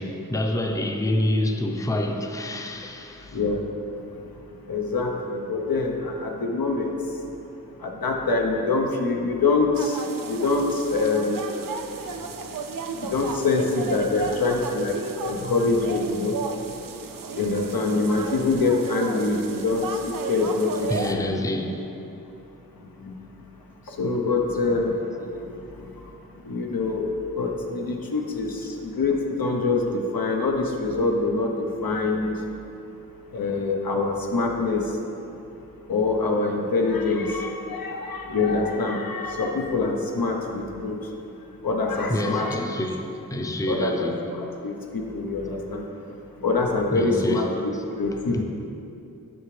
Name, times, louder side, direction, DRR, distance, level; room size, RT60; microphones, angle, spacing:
voice 1, 0.0-3.4 20.9-21.8 42.1-43.0 43.3-44.2 46.9-47.5 48.3-48.4, left 1 dB, 10° left, 0.5 m, -27 dB
voice 2, 3.3-3.7 4.7-7.0 7.8-10.0 10.3-11.4 13.0-16.4 17.3-21.3 23.0-23.1 23.9-25.6 26.5-27.1 27.4-32.3 33.3-34.8 35.9-41.0 41.6-42.6 43.7-45.8 46.4-47.5 48.0-48.4, left 3 dB, 90° left, 0.8 m, -25 dB
sound 1, 9.7-21.1, right 4 dB, 70° right, 0.5 m, -34 dB
8.0 x 5.9 x 3.2 m
wide cardioid pair, 60°, 34 cm